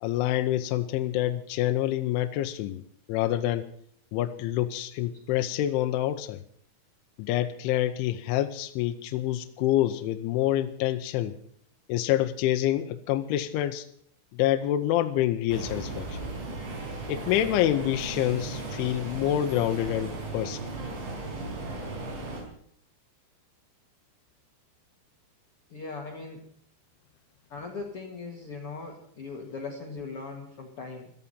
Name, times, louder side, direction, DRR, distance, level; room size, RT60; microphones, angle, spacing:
voice 1, 0.0-2.8 3.1-3.7 4.1-6.4 7.2-11.4 11.9-13.9 14.3-16.2 17.1-20.6, left 13 dB, 80° left, 7 dB, 3.1 m, -27 dB
sound 1, 15.5-22.4, right 3 dB, 65° right, 7.5 m, -36 dB
voice 2, 25.7-26.5 27.5-31.1, left 4 dB, 55° left, 1 dB, 1.6 m, -39 dB
17.0 x 13.5 x 5.6 m, 0.63 s
omnidirectional pair, 5.8 m